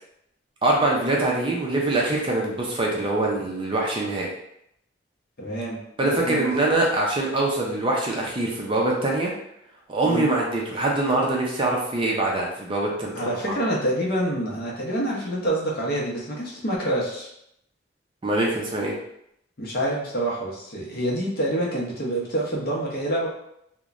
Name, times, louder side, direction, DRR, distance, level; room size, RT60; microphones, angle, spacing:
voice 1, 0.6-4.3 6.0-9.3 9.9-13.5 18.2-18.9, right 2 dB, 25° right, -2 dB, 0.4 m, -24 dB
voice 2, 5.4-6.5 10.0-10.3 13.1-17.3 19.6-23.3, right 1 dB, 50° left, -3 dB, 0.7 m, -27 dB
2.9 x 2.1 x 2.4 m, 0.76 s
head